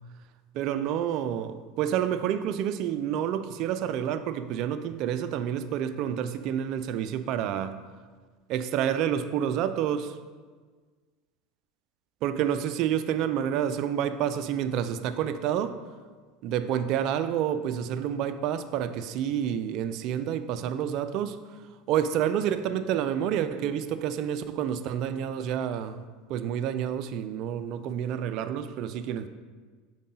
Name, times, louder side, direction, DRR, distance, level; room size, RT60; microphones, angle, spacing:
voice 1, 0.5-7.8 8.5-10.2 12.2-15.8 16.4-21.4 21.9-26.0 26.3-29.3, right 9 dB, 55° right, 11 dB, 0.4 m, -29 dB
5.5 x 4.6 x 3.8 m, 1.5 s
supercardioid pair, 100°, 0 cm